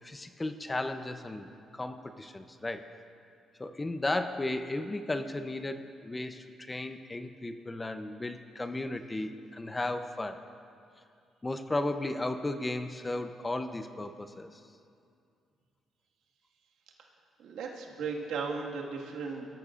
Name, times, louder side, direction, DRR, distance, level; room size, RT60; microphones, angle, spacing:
voice 1, 0.0-2.9 3.6-10.4 11.4-14.6, left 2 dB, 20° left, 9 dB, 0.7 m, -35 dB
voice 2, 17.4-19.5, right 5 dB, 85° right, -1 dB, 1.8 m, -36 dB
21.0 x 13.5 x 2.5 m, 2.4 s
cardioid pair, 90°, 0 cm